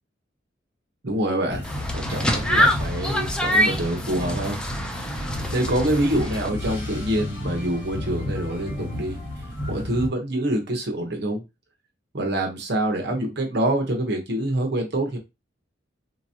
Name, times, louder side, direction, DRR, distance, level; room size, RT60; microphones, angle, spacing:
voice 1, 1.0-1.6 1.9-4.6 5.5-9.2 9.4-11.4 12.1-15.2, right 1 dB, 60° right, 2 dB, 1.0 m, -26 dB
sound 1, 1.5-10.1, left 1 dB, 50° left, 2.2 m, -31 dB
sound 2, 1.6-6.5, equal, 5° left, 0.5 m, -25 dB
3.4 x 2.9 x 2.8 m, 0.24 s
head